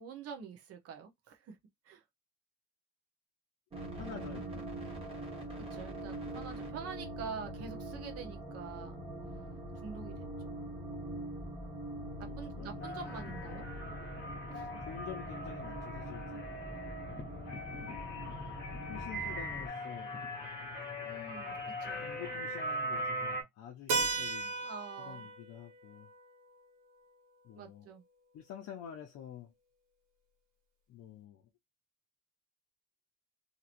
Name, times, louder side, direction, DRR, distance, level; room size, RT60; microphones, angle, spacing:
voice 1, 0.0-1.6 1.8-2.0 5.6-9.0 9.8-10.6 12.2-13.7 14.5-14.7 21.0-22.1 24.6-25.3 27.5-28.0, right 6 dB, 45° right, 0.9 m, -46 dB
sound 1, 3.7-19.7, right 1 dB, 15° right, 1.0 m, -43 dB
voice 2, 3.9-4.8 12.3-12.9 14.8-16.7 18.9-20.2 22.0-24.6 25.0-26.1 27.4-27.9 28.3-29.5 30.9-31.4, left 9 dB, 50° left, 0.6 m, -48 dB
sound 2, 12.8-23.4, equal, 30° left, 1.0 m, -40 dB
Keyboard (musical), 23.9-28.4, right 4 dB, 75° right, 1.0 m, -38 dB
2.9 x 2.8 x 2.5 m
cardioid pair, 175°, 33 cm